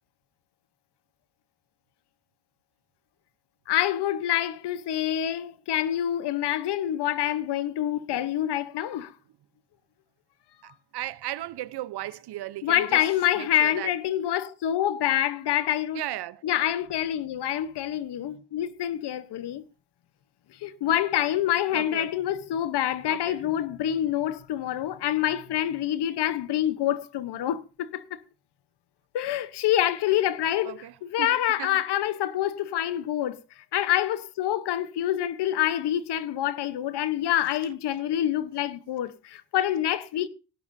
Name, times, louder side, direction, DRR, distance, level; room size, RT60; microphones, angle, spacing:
voice 1, 3.7-9.1 10.6-10.7 12.6-16.0 16.4-19.6 20.6-28.2 29.1-33.4 33.7-40.3, left 12 dB, 80° left, 1.0 m, -26 dB
voice 2, 10.6-13.0 13.4-13.9 15.9-16.4 21.7-22.1 23.1-23.4 30.6-31.7, right 14 dB, 75° right, 0.8 m, -36 dB
18.0 x 11.0 x 2.7 m
cardioid pair, 100°, 40 cm